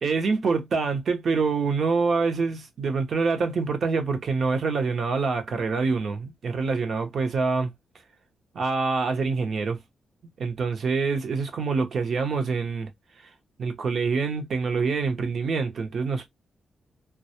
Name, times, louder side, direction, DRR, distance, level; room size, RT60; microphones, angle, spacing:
voice 1, 0.0-7.7 8.5-9.8 10.4-12.9 13.6-16.3, right 4 dB, 55° right, 0.7 m, -26 dB
2.2 x 2.0 x 2.8 m
cardioid pair, 115°, 0 cm